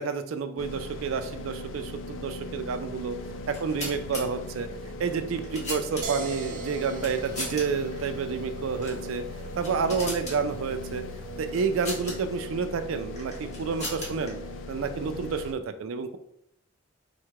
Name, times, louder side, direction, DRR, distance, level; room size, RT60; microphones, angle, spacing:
voice 1, 0.0-3.1 3.5-4.7 5.0-9.2 9.6-11.0 11.4-14.4 14.7-16.2, right 5 dB, 80° right, 9 dB, 0.4 m, -29 dB
sound 1, 0.6-15.5, left 2 dB, 65° left, 0.4 m, -39 dB
sound 2, 3.4-4.2 5.1-6.3 7.0-7.6 7.9-8.1 8.8-9.0 9.4-10.4 11.5-12.2 13.2-14.3, left 1 dB, 35° left, 1.3 m, -37 dB
sound 3, 6.0-11.8, right 3 dB, 40° right, 0.7 m, -42 dB
4.7 x 2.1 x 4.5 m, 0.76 s
head